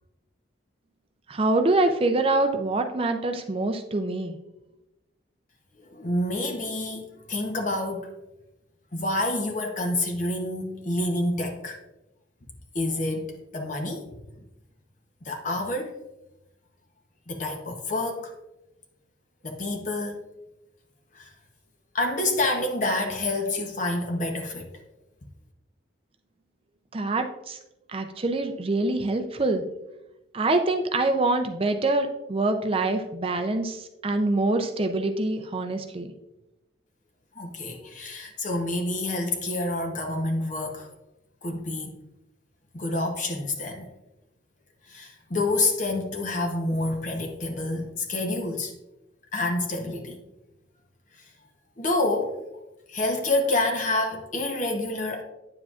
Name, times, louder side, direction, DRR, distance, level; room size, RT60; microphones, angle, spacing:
voice 1, 1.3-4.4 26.9-27.6 27.9-29.6 30.3-36.1, right 2 dB, 30° right, 6 dB, 0.5 m, -25 dB
voice 2, 5.8-8.1 8.9-11.8 12.7-14.1 15.2-15.9 17.3-18.3 19.4-20.2 21.1-21.3 21.9-24.7 37.3-40.9 41.4-42.0 42.7-43.9 44.9-48.7 49.3-50.2 51.1-51.3 51.8-52.4 52.9-55.2, left 2 dB, 40° left, 2 dB, 0.8 m, -28 dB
9.5 x 7.4 x 2.4 m, 0.95 s
head